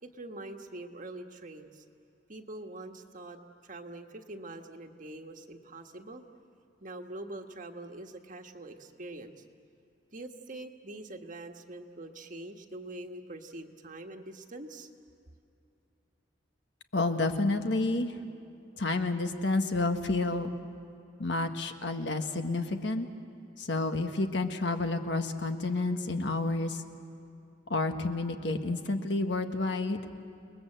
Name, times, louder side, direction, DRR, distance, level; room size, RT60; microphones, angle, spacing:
voice 1, 0.0-1.8 2.3-6.2 6.8-9.4 10.1-14.9, right 2 dB, 45° right, 5 dB, 1.4 m, -44 dB
voice 2, 16.9-18.2 18.8-20.5 21.2-23.1 23.6-26.8 27.7-30.0, left 2 dB, 65° left, 6 dB, 1.5 m, -30 dB
29.5 x 20.5 x 7.8 m, 2.7 s
head